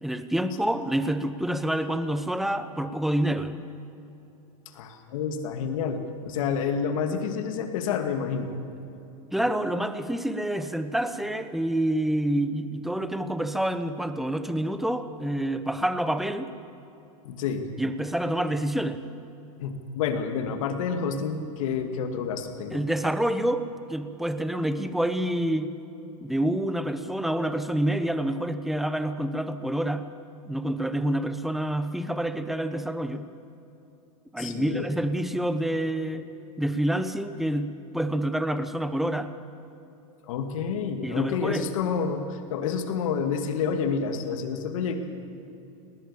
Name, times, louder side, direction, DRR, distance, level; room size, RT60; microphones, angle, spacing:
voice 1, 0.0-3.7 9.3-16.5 17.8-19.1 22.7-25.7 26.2-30.1 30.5-33.3 34.3-36.3 36.6-39.3 41.0-41.7, right 1 dB, ahead, 10 dB, 0.9 m, -27 dB
voice 2, 4.7-8.5 17.2-17.7 19.6-22.8 34.4-34.9 40.2-45.1, left 6 dB, 70° left, 6 dB, 2.3 m, -29 dB
19.5 x 18.5 x 7.3 m, 2.8 s
supercardioid pair, 130°, 17 cm